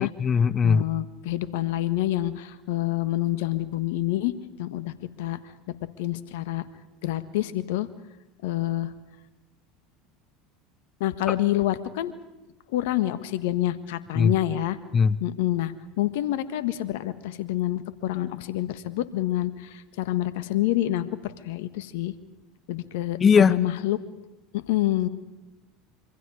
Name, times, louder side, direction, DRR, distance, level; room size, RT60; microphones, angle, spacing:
voice 1, 0.0-0.8 14.2-14.3 14.9-15.2 23.2-23.6, left 6 dB, 30° left, 19 dB, 0.8 m, -19 dB
voice 2, 0.6-4.3 4.6-5.4 6.0-6.6 7.0-7.9 8.4-8.9 11.0-12.1 12.7-14.8 15.2-22.1 22.7-24.0 24.5-25.1, left 14 dB, 70° left, 13 dB, 1.6 m, -27 dB
26.5 x 25.0 x 5.0 m, 1.0 s
hypercardioid pair, 80°, 0 cm